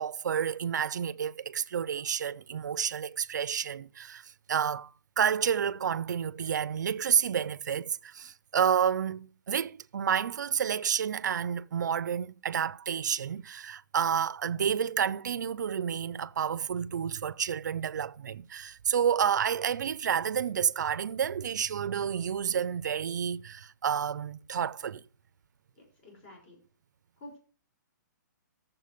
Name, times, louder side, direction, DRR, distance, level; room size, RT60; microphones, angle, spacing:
voice 1, 0.0-25.0, right 8 dB, 70° right, 0.6 m, -30 dB
voice 2, 25.8-26.6 27.2-27.4, left 1 dB, 35° left, 5.7 m, -50 dB
14.0 x 7.3 x 5.1 m
hypercardioid pair, 170°, 10 cm